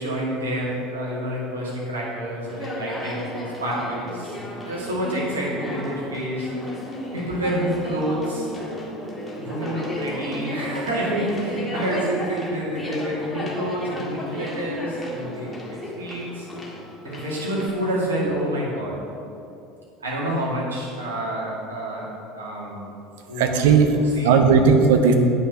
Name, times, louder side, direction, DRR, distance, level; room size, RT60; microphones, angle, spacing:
voice 1, 0.0-4.4 4.7-6.5 7.1-8.5 9.4-16.5 17.0-19.1 20.0-22.9 23.3-23.6 24.2-24.5, equal, 80° right, -5 dB, 2.2 m, -28 dB
Conversation, 2.5-17.7, equal, 10° left, 1.7 m, -34 dB
voice 2, 23.4-25.1, right 5 dB, 65° right, 5 dB, 0.8 m, -16 dB
8.8 x 5.7 x 5.9 m, 2.7 s
figure-of-eight pair, 70°, 0 cm